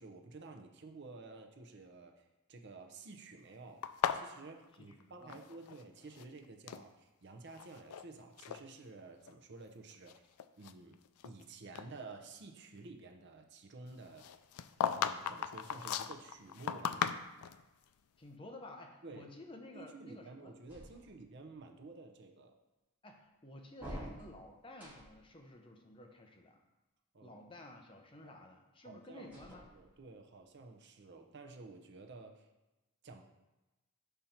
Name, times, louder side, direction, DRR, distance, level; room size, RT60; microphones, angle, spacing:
voice 1, 0.0-3.9 4.1-10.2 10.6-14.3 15.0-17.1 19.0-19.3 19.7-22.5 27.1-27.4 28.2-28.3 28.8-29.3 29.7-32.5 33.0-33.2, right 3 dB, 50° right, 4 dB, 0.6 m, -52 dB
sound 1, 3.8-5.8 6.1-6.9 7.5-8.0 8.4-8.6 9.3-9.4 9.9-11.4 11.7-11.9 14.2-17.6, left 8 dB, 85° left, 0.4 m, -37 dB
voice 2, 4.8-5.4 18.2-20.5 23.0-26.6 27.2-29.7, left 1 dB, 25° left, 2 dB, 0.6 m, -53 dB
front door multiple open close, 20.7-21.4 23.7-25.3 29.2-30.2, right 1 dB, 10° right, 1.9 m, -49 dB
5.6 x 5.2 x 4.4 m, 1.1 s
head